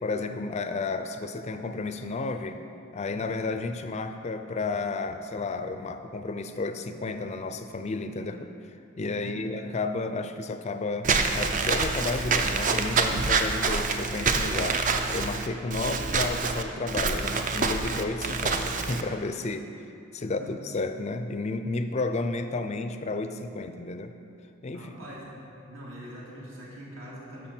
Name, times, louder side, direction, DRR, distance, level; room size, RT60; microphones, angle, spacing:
voice 1, 0.0-2.6 2.9-14.8 15.1-24.1 24.6-24.9, left 3 dB, 30° left, 8 dB, 0.4 m, -32 dB
voice 2, 9.1-9.6 20.2-20.6 24.7-25.3 25.7-27.5, equal, 65° right, -6 dB, 2.2 m, -43 dB
Walk footsteps / Squeak, 11.0-19.0, right 4 dB, 35° right, 0.5 m, -26 dB
11.5 x 6.4 x 4.4 m, 2.6 s
head